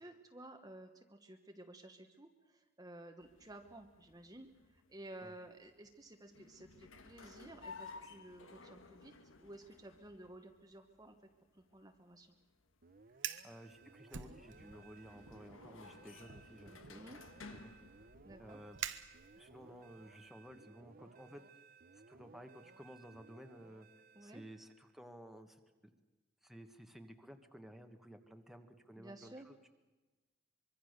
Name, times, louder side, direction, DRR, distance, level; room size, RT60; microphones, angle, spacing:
voice 1, 0.0-9.1 9.4-11.2 11.5-12.3 16.9-17.2 18.2-18.6 24.1-24.4 29.0-29.5, right 1 dB, 20° right, 4 dB, 1.2 m, -54 dB
sound 1, 3.2-20.3, left 4 dB, 90° left, 1.6 m, -57 dB
sound 2, 12.8-24.9, right 4 dB, 45° right, 0.8 m, -61 dB
Fire, 13.1-13.5 14.1-14.9 15.2-15.6 16.3-19.6, right 9 dB, 65° right, 1.2 m, -47 dB
voice 2, 13.4-17.0 17.5-17.7 18.0-18.1 18.4-18.8 19.4-21.4 22.1-23.9 24.2-25.6 26.4-29.7, equal, ahead, 5 dB, 1.4 m, -55 dB
24.5 x 23.0 x 6.6 m, 1.2 s
head